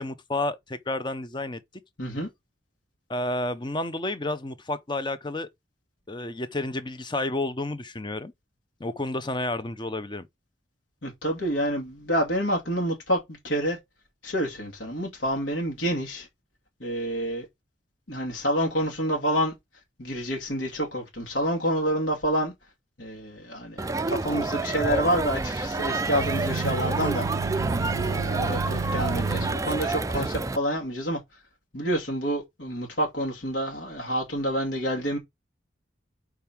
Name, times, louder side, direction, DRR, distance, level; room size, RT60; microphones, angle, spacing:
voice 1, 0.0-1.6 3.1-5.5 6.1-8.3 8.8-10.3, left 2 dB, 25° left, 0.7 m, -30 dB
voice 2, 2.0-2.3 11.0-13.8 14.2-16.3 16.8-17.5 18.1-19.5 20.0-22.5 23.0-27.3 28.0-31.2 31.7-35.2, equal, 70° left, 2.2 m, -28 dB
Crowd, 23.8-30.6, right 3 dB, 15° right, 0.4 m, -29 dB
sound 1, 25.9-29.6, right 4 dB, 85° right, 0.5 m, -30 dB
5.3 x 4.7 x 5.9 m
head